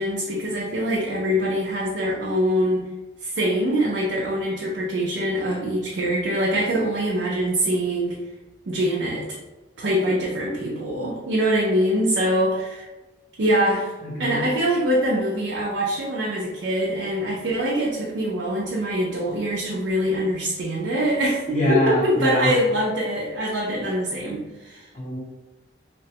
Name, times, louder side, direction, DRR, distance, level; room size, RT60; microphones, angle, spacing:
voice 1, 0.0-2.9 3.2-8.2 8.7-9.4 9.8-12.9 13.4-13.9 14.2-24.9, equal, 70° right, -4 dB, 0.5 m, -24 dB
voice 2, 14.0-14.4 21.5-22.5 24.9-25.2, left 1 dB, 40° left, -7 dB, 0.9 m, -24 dB
2.8 x 2.1 x 2.8 m, 1.1 s
head